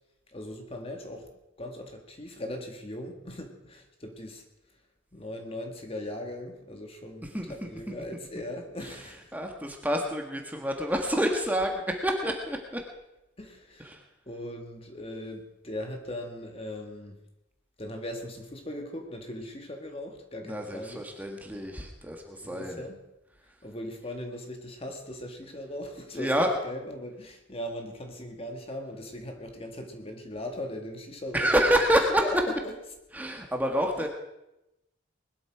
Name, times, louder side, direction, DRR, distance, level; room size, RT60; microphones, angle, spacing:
voice 1, 0.3-1.3 1.6-4.4 5.1-9.4 13.4-13.9 14.3-17.2 17.8-21.1 21.5-21.6 22.4-23.0 23.6-31.5 32.2-32.4 32.6-32.7, left 1 dB, 30° left, 4 dB, 1.9 m, -39 dB
voice 2, 7.2-7.9 8.8-12.8 13.8-14.0 20.4-22.8 26.1-26.5 31.3-32.3 33.1-34.1, equal, 10° right, 2 dB, 1.4 m, -28 dB
20.5 x 12.5 x 4.9 m, 0.92 s
head